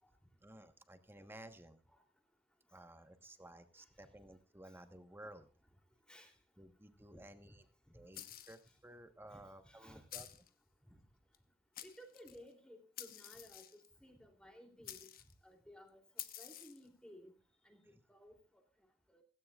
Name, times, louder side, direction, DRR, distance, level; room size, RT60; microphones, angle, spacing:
voice 1, 0.4-1.8 2.7-5.5 6.6-7.6 7.9-10.3 17.9-18.0, right 1 dB, 10° right, 8 dB, 1.3 m, -55 dB
sound 1, 8.1-8.7 10.1-10.5 11.3-11.4 11.7-12.4 13.0-13.9 14.8-15.3 16.2-16.9, left 12 dB, 50° left, 1.1 m, -49 dB
voice 2, 9.3-10.0 10.9-11.0 11.8-15.1 15.4-16.0 16.4-17.3 17.6-18.4 19.1-19.2, equal, 5° left, 3 dB, 3.0 m, -58 dB
16.5 x 16.5 x 2.4 m, 0.37 s
head